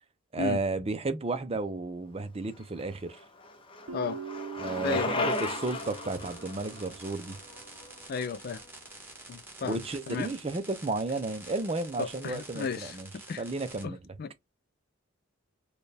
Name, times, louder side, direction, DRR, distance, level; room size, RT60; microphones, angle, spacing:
voice 1, 0.3-3.2 4.6-7.4 9.6-13.1 13.4-14.0, right 3 dB, 25° right, 0.5 m, -33 dB
Bicycle, 2.6-8.6, left 2 dB, 25° left, 0.7 m, -36 dB
Guitar, 3.9-7.2, right 5 dB, 70° right, 0.5 m, -43 dB
voice 2, 4.8-5.3 8.1-8.6 9.3-10.3 12.0-13.4 13.8-14.3, left 5 dB, 45° left, 0.3 m, -34 dB
sound 1, 5.3-13.8, right 2 dB, 10° right, 1.3 m, -48 dB
4.4 x 2.3 x 3.3 m
head